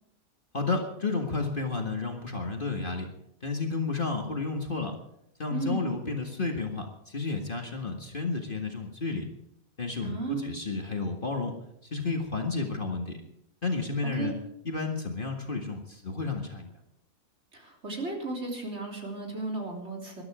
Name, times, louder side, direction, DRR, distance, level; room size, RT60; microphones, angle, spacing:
voice 1, 0.5-3.1 3.4-4.9 5.4-9.3 9.8-11.5 11.8-13.2 13.6-14.3 14.7-16.7, left 3 dB, 35° left, 3 dB, 2.0 m, -31 dB
voice 2, 5.5-5.9 10.0-10.5 14.1-14.4 17.5-20.2, right 3 dB, 45° right, 0 dB, 3.7 m, -34 dB
20.5 x 12.5 x 4.9 m, 0.77 s
omnidirectional pair, 1.6 m